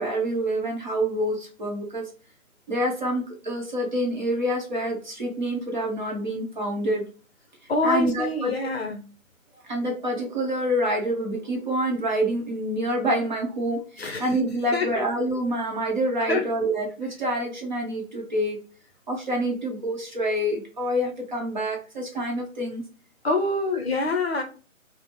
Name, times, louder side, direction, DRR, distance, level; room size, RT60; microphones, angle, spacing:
voice 1, 0.0-2.0 2.7-7.0 7.8-8.5 9.6-18.6 19.1-22.8, right 1 dB, 35° right, 0 dB, 0.8 m, -27 dB
voice 2, 7.7-9.0 14.0-14.4 14.7-15.0 16.3-16.4 23.2-24.4, left 3 dB, 50° left, 4 dB, 0.6 m, -26 dB
2.7 x 2.1 x 3.2 m, 0.37 s
figure-of-eight pair, 155°, 41 cm